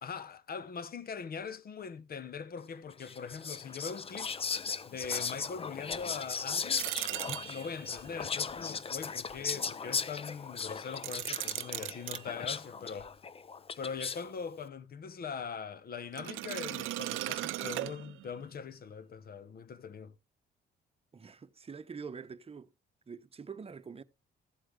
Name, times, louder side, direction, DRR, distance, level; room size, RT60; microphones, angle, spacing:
voice 1, 0.0-4.4 4.8-6.8 7.5-13.2 13.8-20.1, left 6 dB, 50° left, 1.0 m, -42 dB
Whispering, 3.0-14.3, left 5 dB, 30° left, 0.6 m, -37 dB
sound 1, 6.8-7.9 10.9-12.2 16.1-18.4, right 16 dB, 90° right, 0.6 m, -37 dB
voice 2, 21.1-22.7 23.1-24.0, right 5 dB, 30° right, 0.9 m, -45 dB
15.0 x 7.7 x 3.3 m
cardioid pair, 90°, 20 cm